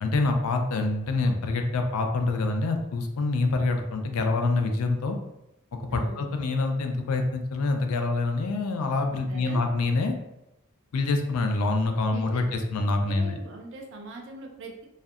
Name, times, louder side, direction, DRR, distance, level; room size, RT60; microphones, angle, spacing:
voice 1, 0.0-5.2 5.7-10.2 10.9-13.3, left 3 dB, 80° left, 5 dB, 0.4 m, -26 dB
voice 2, 5.9-6.2 9.1-9.6 12.0-12.4 13.1-14.8, right 2 dB, 55° right, 2 dB, 0.4 m, -41 dB
2.6 x 2.1 x 2.4 m, 0.88 s
head